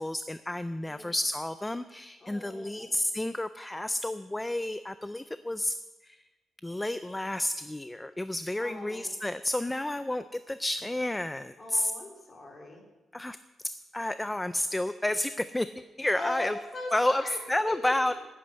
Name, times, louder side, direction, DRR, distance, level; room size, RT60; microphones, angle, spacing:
voice 1, 0.0-5.7 6.0-6.2 6.6-11.9 13.1-13.4 13.9-15.7 16.0-16.6 16.9-17.2 17.5-18.2, left 1 dB, 10° left, 12 dB, 0.3 m, -30 dB
voice 2, 0.8-1.1 2.2-2.9 8.6-9.1 11.6-12.8 16.1-17.4 17.7-18.2, left 2 dB, 25° left, 1 dB, 2.9 m, -40 dB
11.5 x 8.5 x 9.7 m, 1.1 s
wide cardioid pair, 165°, 0 cm